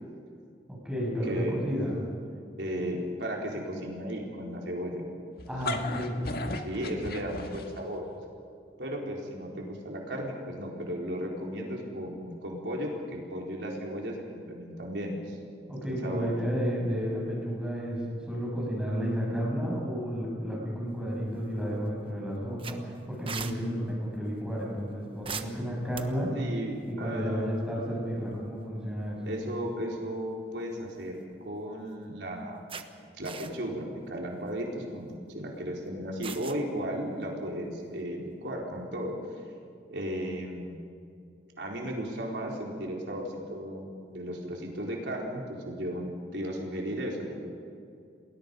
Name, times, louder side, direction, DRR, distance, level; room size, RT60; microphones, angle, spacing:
voice 1, 0.7-2.0 5.5-6.3 15.7-26.3 26.9-29.2, equal, 5° right, -4 dB, 7.0 m, -32 dB
voice 2, 1.2-1.6 2.6-5.0 6.6-8.0 8.8-15.4 15.9-16.3 26.3-27.6 29.2-32.8 33.1-39.1 39.9-40.8 41.6-47.5, equal, 75° right, -1 dB, 4.0 m, -35 dB
sound 1, 5.4-8.0, left 2 dB, 60° left, 1.8 m, -35 dB
sound 2, 21.3-21.8 22.1-22.2 22.6-23.6 25.2-26.4 28.0-28.2 28.6-28.7 30.7-31.3 31.9-32.0 32.7-32.9 33.2-33.8 34.3-34.5 36.2-36.6, right 6 dB, 30° right, 1.2 m, -40 dB
30.0 x 20.5 x 5.3 m, 2.5 s
head